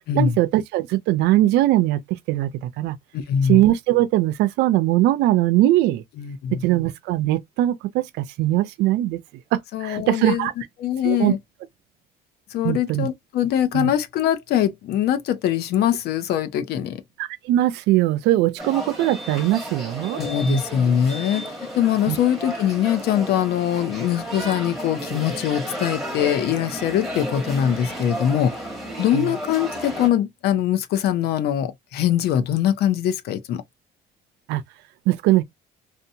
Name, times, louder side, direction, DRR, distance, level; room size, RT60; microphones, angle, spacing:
voice 1, 0.1-3.0 3.4-6.0 6.5-9.2 9.5-10.5 11.0-11.3 12.6-13.1 13.7-13.9 17.2-20.2 20.4-20.6 22.1-22.2 29.1-29.3 34.5-34.6 35.1-35.4, right 15 dB, 85° right, 0.4 m, -21 dB
voice 2, 3.1-3.6 6.2-6.6 9.7-10.5 10.8-11.4 12.5-17.0 20.2-21.5 21.7-28.5 29.0-33.6, left 10 dB, 70° left, 0.6 m, -22 dB
sound 1, 18.6-30.1, right 1 dB, ahead, 1.3 m, -33 dB
2.7 x 2.1 x 2.7 m
cardioid pair, 110°, 17 cm